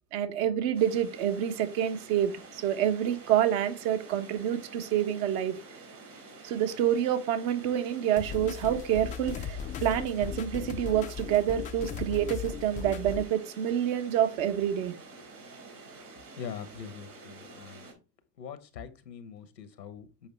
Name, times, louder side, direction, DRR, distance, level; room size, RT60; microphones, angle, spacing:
voice 1, 0.1-5.5 6.4-14.9, right 10 dB, 60° right, 1.2 m, -28 dB
sound 1, 0.7-17.9, right 3 dB, 80° right, 3.9 m, -49 dB
sound 2, 8.2-13.2, left 7 dB, 20° left, 0.3 m, -37 dB
voice 2, 16.4-17.9 18.4-20.3, left 7 dB, 90° left, 1.2 m, -43 dB
7.1 x 5.1 x 3.3 m
hypercardioid pair, 90°, 49 cm